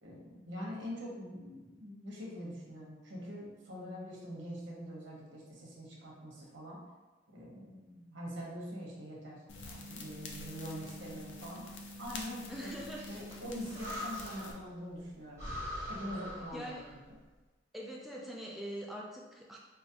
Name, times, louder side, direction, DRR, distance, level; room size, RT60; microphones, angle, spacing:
voice 1, 0.0-6.8 7.3-11.6 12.0-12.7 13.1-15.4 15.9-16.7, equal, 75° right, -4 dB, 0.9 m, -44 dB
sound 1, 9.5-14.5, left 2 dB, 75° left, 0.5 m, -46 dB
voice 2, 12.5-13.1 16.5-16.9 17.7-19.6, equal, ahead, -3 dB, 0.3 m, -43 dB
Breathing, 12.5-14.7 15.0-15.1 15.4-17.0, equal, 15° right, 0.7 m, -43 dB
4.6 x 2.0 x 2.7 m, 1.2 s
head